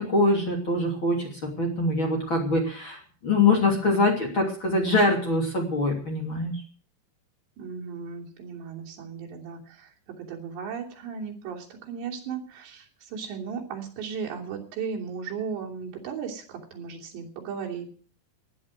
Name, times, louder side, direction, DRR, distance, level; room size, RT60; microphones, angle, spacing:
voice 1, 0.0-6.6, left 2 dB, 30° left, 0 dB, 3.1 m, -24 dB
voice 2, 7.6-17.9, right 6 dB, 75° right, -1 dB, 5.2 m, -36 dB
17.0 x 11.0 x 6.3 m, 0.43 s
omnidirectional pair, 5.0 m